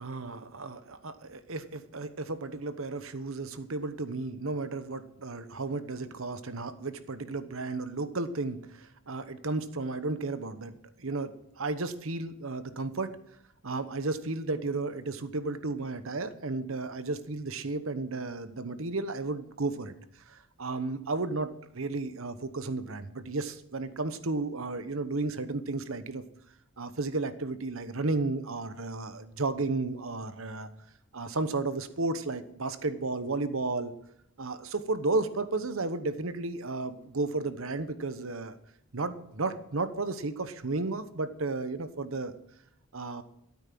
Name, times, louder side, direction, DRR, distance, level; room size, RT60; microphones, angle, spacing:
voice 1, 0.0-13.1 13.6-20.0 20.3-26.2 26.8-30.7 31.1-33.9 34.4-38.5 38.9-42.3 42.9-43.2, right 3 dB, 65° right, 12 dB, 1.0 m, -33 dB
13.0 x 8.9 x 6.0 m, 0.74 s
head